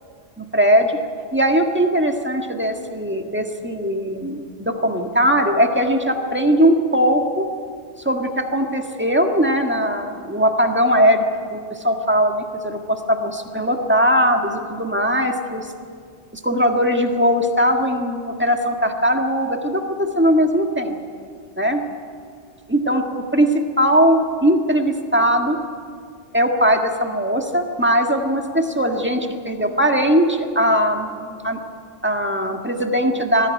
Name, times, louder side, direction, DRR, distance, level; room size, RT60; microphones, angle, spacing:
voice 1, 0.4-1.0 1.3-7.5 8.0-11.2 11.5-15.7 16.4-21.0 21.6-21.8 22.7-23.5 23.8-25.6 26.3-31.6 32.0-33.5, equal, 10° right, 3 dB, 1.6 m, -19 dB
20.5 x 15.0 x 9.7 m, 2.1 s
omnidirectional pair, 1.2 m